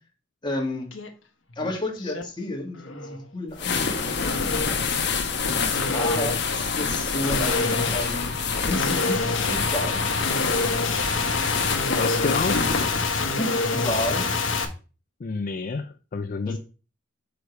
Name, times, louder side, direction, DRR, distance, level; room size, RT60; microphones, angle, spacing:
voice 1, 0.4-0.9 1.6-4.8 5.4-10.1 13.4-14.3 16.5-16.6, left 1 dB, 25° left, 0 dB, 2.1 m, -31 dB
sound 1, 0.9-1.1 1.5-2.2 2.7-3.2 4.2-4.8 5.7-14.6, left 3 dB, 90° left, 1.2 m, -27 dB
sound 2, 3.5-13.4, left 5 dB, 65° left, 1.1 m, -27 dB
voice 2, 11.9-12.6 15.2-16.6, left 4 dB, 45° left, 9 dB, 0.4 m, -29 dB
6.4 x 5.0 x 4.7 m, 0.35 s
head